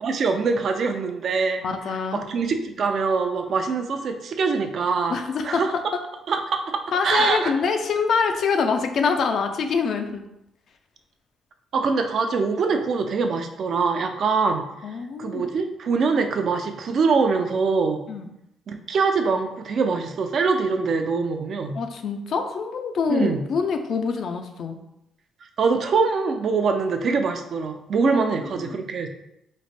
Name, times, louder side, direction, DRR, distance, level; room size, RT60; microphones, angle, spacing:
voice 1, 0.0-1.6 2.1-5.2 5.4-5.7 6.3-7.5 11.7-14.6 15.2-18.0 18.7-21.8 23.1-23.4 25.6-29.1, right 4 dB, 60° right, 6 dB, 0.4 m, -23 dB
voice 2, 1.6-2.2 5.1-5.6 6.9-10.2 14.8-15.4 18.1-18.3 21.7-24.8 28.0-28.9, left 5 dB, 65° left, 6 dB, 0.4 m, -25 dB
3.1 x 2.1 x 4.2 m, 0.84 s
cardioid pair, 90°, 0 cm